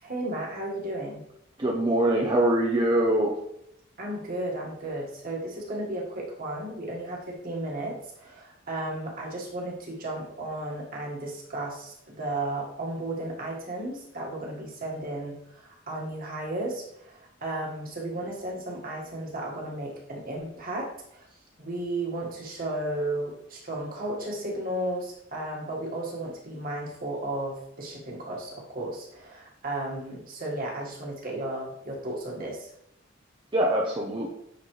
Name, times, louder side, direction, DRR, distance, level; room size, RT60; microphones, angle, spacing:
voice 1, 0.0-1.2 4.0-21.3 21.6-32.7, right 1 dB, 50° right, -2 dB, 1.8 m, -34 dB
voice 2, 1.6-3.4 33.5-34.3, right 1 dB, 25° right, -2 dB, 0.7 m, -23 dB
9.6 x 4.0 x 3.3 m, 0.77 s
head